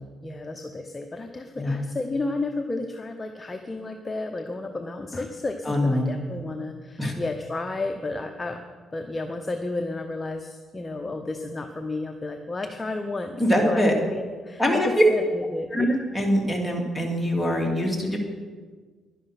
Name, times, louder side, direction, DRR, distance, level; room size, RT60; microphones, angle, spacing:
voice 1, 0.2-8.6 8.9-13.8 14.1-14.7 15.0-15.9, left 2 dB, 25° left, 4 dB, 0.9 m, -32 dB
voice 2, 5.6-6.2 7.0-7.1 13.4-13.9 14.6-14.9 15.7-18.2, equal, 10° left, -1 dB, 2.9 m, -23 dB
11.0 x 11.0 x 6.0 m, 1.5 s
cardioid pair, 90°, 0 cm